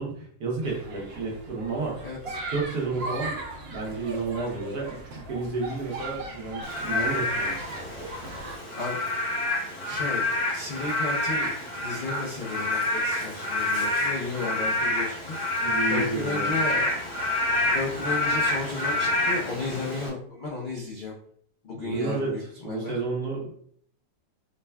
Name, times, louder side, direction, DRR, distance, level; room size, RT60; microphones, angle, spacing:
voice 1, 0.0-7.6 15.6-16.5 21.7-23.5, right 3 dB, 75° right, -2 dB, 1.5 m, -31 dB
sound 1, 0.6-8.6, right 2 dB, 55° right, 0.7 m, -38 dB
voice 2, 2.0-2.4 8.7-9.0 9.8-10.3 10.5-15.4 15.9-16.9 17.5-21.2 21.6-23.0, left 3 dB, 80° left, -4 dB, 0.4 m, -33 dB
Frog / Rain, 6.6-20.1, left 2 dB, 30° left, 0.8 m, -28 dB
5.0 x 2.2 x 2.3 m, 0.63 s
omnidirectional pair, 1.7 m